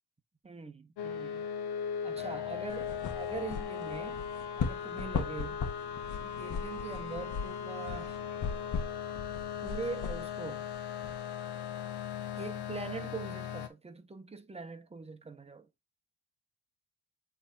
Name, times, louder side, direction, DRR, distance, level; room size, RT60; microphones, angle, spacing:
voice 1, 0.4-1.5 2.0-4.2 4.5-5.7 6.2-8.2 9.6-10.7 12.4-15.7, right 4 dB, 15° right, 1.3 m, -42 dB
sound 1, 1.0-13.7, left 8 dB, 85° left, 1.2 m, -38 dB
sound 2, 2.7-11.2, left 6 dB, 50° left, 1.7 m, -39 dB
7.8 x 3.7 x 4.1 m
cardioid pair, 110°, 38 cm